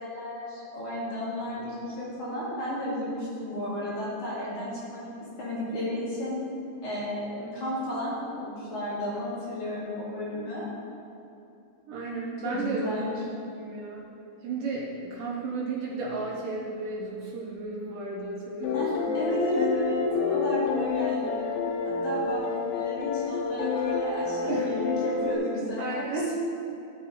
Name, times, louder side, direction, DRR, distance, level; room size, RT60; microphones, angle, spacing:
voice 1, 0.0-5.0 5.3-6.3 6.8-10.7 12.4-13.1 18.7-21.5 21.8-26.0, left 1 dB, 70° left, -8 dB, 1.2 m, -33 dB
voice 2, 11.9-13.2 13.6-14.1 14.4-19.1 24.4-24.7 25.8-26.3, right 3 dB, 85° right, -3 dB, 1.9 m, -34 dB
sound 1, 18.6-25.4, left 5 dB, 85° left, 2.1 m, -28 dB
12.0 x 5.8 x 4.1 m, 2.7 s
omnidirectional pair, 5.2 m